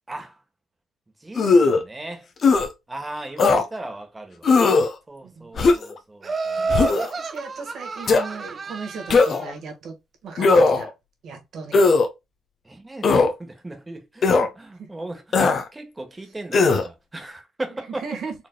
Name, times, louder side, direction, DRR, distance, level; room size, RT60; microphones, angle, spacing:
voice 1, 0.1-0.4 1.2-2.3 2.9-4.6 5.1-6.9 12.6-15.4 15.7-18.1, right 2 dB, 15° right, 1.2 m, -37 dB
sound 1, 1.4-1.8 2.4-2.7 3.4-3.6 4.4-4.9 5.6-5.9 6.7-7.1 8.1-8.2 9.1-9.5 10.4-10.9 11.7-12.1 13.0-13.3 14.2-14.5 15.3-15.6 16.5-16.9, left 4 dB, 50° left, 0.8 m, -17 dB
voice 2, 5.2-5.5 6.6-9.9 10.2-10.5 10.7-10.9 11.2-11.8 18.0-18.3, right 4 dB, 70° right, 1.5 m, -36 dB
Laughter, 6.2-9.4, right 4 dB, 40° right, 0.5 m, -29 dB
4.2 x 3.3 x 2.2 m
cardioid pair, 90°, 0 cm